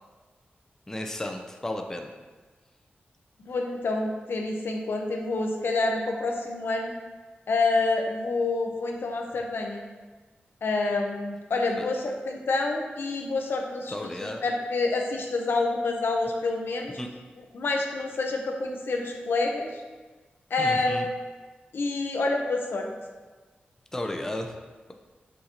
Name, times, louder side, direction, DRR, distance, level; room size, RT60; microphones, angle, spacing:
voice 1, 0.9-2.1 11.8-11.9 13.9-14.4 17.0-17.1 20.6-21.1 23.9-24.6, left 1 dB, 15° left, 4 dB, 0.3 m, -33 dB
voice 2, 3.4-6.9 7.5-9.8 10.6-17.0 17.4-19.8 20.5-21.1 21.7-22.9, left 3 dB, 70° left, 2 dB, 0.6 m, -28 dB
6.2 x 2.7 x 2.8 m, 1.3 s
wide cardioid pair, 85°, 4 cm